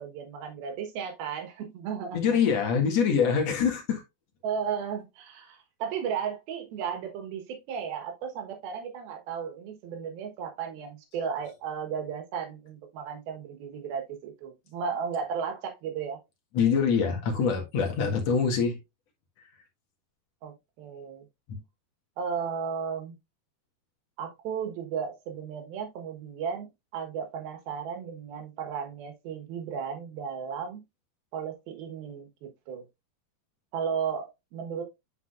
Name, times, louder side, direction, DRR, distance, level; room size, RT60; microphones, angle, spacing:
voice 1, 0.0-2.4 4.4-16.2 20.4-21.3 22.2-23.2 24.2-30.8 31.3-32.9 33.7-34.8, right 7 dB, 75° right, 3.1 m, -35 dB
voice 2, 2.1-4.0 16.5-18.8 21.5-21.6, left 6 dB, 55° left, 2.2 m, -24 dB
9.6 x 4.8 x 2.5 m
omnidirectional pair, 4.5 m